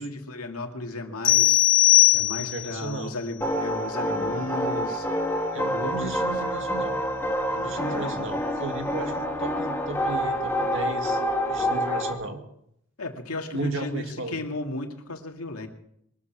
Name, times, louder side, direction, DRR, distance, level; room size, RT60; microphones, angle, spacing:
voice 1, 0.0-1.6 2.1-5.1 5.7-6.3 7.5-8.2 13.0-15.7, left 2 dB, 90° left, 3 dB, 2.3 m, -35 dB
sound 1, 1.2-2.8, left 17 dB, 40° left, 2.0 m, -19 dB
voice 2, 2.4-3.1 5.5-7.0 7.5-11.2 11.5-12.4 13.5-14.4, right 2 dB, 60° right, 5 dB, 2.1 m, -35 dB
sound 2, 3.4-12.1, equal, 10° left, 1.5 m, -27 dB
22.5 x 13.5 x 4.7 m, 0.74 s
head